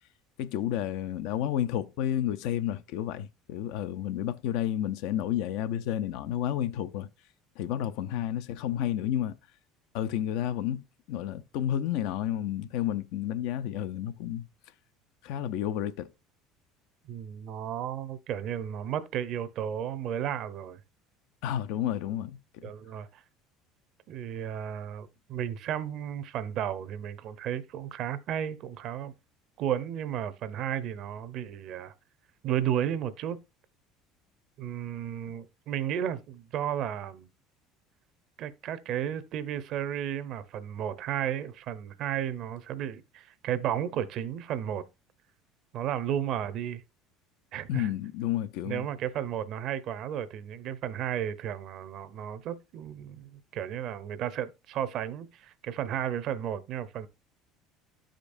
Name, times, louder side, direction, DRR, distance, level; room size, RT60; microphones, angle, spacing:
voice 1, 0.4-7.1 7.6-9.4 9.9-14.5 15.2-16.1 21.4-22.7 47.7-48.9, left 11 dB, 75° left, 0.5 m, -31 dB
voice 2, 17.1-20.8 22.6-23.2 24.1-29.1 29.6-31.9 32.4-33.4 34.6-37.3 38.4-44.8 45.7-46.8 47.5-47.9 48.6-57.1, right 10 dB, 55° right, 0.7 m, -33 dB
12.0 x 5.1 x 2.6 m
supercardioid pair, 120°, 0 cm